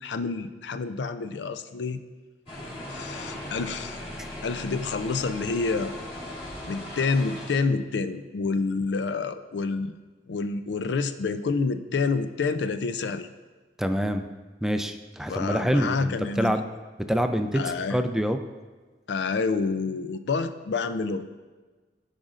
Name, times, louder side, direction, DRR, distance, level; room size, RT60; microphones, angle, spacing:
voice 1, 0.0-2.0 2.9-4.0 4.4-5.9 6.7-10.0 10.3-13.3 15.3-16.5 17.5-18.0 19.1-21.3, left 4 dB, 80° left, 10 dB, 0.4 m, -28 dB
sound 1, 2.5-7.5, left 1 dB, 35° left, 2.6 m, -38 dB
voice 2, 13.8-14.3 14.6-16.6 17.1-18.4, equal, 5° right, 7 dB, 0.3 m, -26 dB
14.5 x 5.0 x 2.5 m, 1.3 s
head